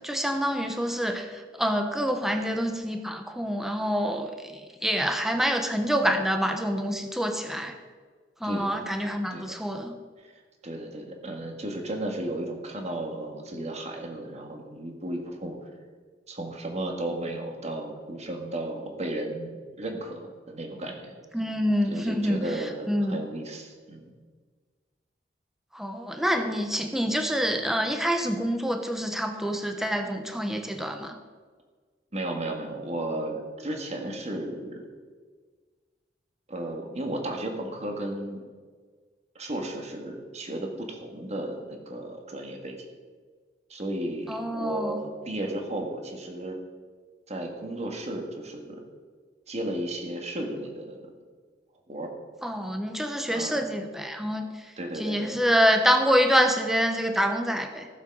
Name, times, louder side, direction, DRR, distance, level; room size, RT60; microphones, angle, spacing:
voice 1, 0.0-7.7 8.4-9.9 21.3-22.4 22.9-23.2 25.7-31.2 44.3-45.0 52.4-54.5 55.0-57.9, equal, ahead, 5 dB, 0.9 m, -26 dB
voice 2, 10.6-15.6 16.3-21.1 21.8-24.1 32.1-34.9 36.5-38.4 39.4-42.9 43.7-46.6 47.3-48.8 49.5-51.1 51.9-52.1 53.3-53.6 54.8-55.4, right 1 dB, 40° right, 3 dB, 1.9 m, -34 dB
16.0 x 7.4 x 5.5 m, 1.5 s
head